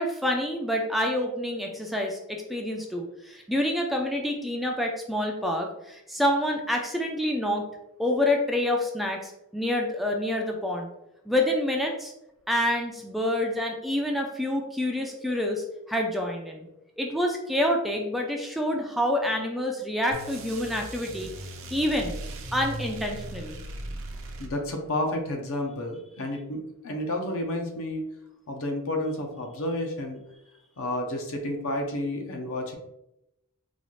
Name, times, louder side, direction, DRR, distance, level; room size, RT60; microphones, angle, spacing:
voice 1, 0.0-7.7 8.0-10.9 11.3-12.1 12.5-16.7 17.0-21.3 21.7-22.1 22.5-23.6, left 1 dB, ahead, 1 dB, 0.3 m, -27 dB
sound 1, 20.1-24.9, right 2 dB, 65° right, 0.6 m, -38 dB
voice 2, 24.4-28.1 28.5-30.2 30.8-32.7, left 1 dB, 65° left, 3 dB, 0.7 m, -31 dB
4.0 x 2.4 x 3.0 m, 0.87 s
head